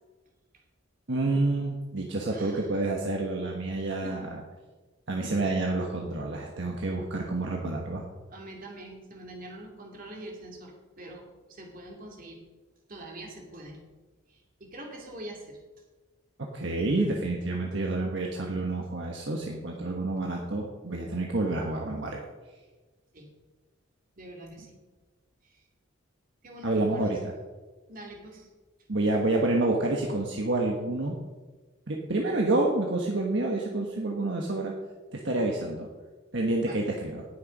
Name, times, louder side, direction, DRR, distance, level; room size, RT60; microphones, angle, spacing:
voice 1, 1.1-4.4 5.1-8.0 16.5-22.2 26.6-27.2 28.9-31.2 31.9-34.7 35.1-35.9 36.3-37.3, right 2 dB, 60° right, 0 dB, 1.3 m, -28 dB
voice 2, 2.3-2.7 4.0-4.2 8.3-12.4 12.9-13.8 14.3-15.6 23.1-23.3 24.2-24.8 25.4-25.6 26.4-27.2 27.9-28.5 36.6-36.9, right 1 dB, 45° right, 0 dB, 2.7 m, -44 dB
18.5 x 6.6 x 5.3 m, 1.3 s
head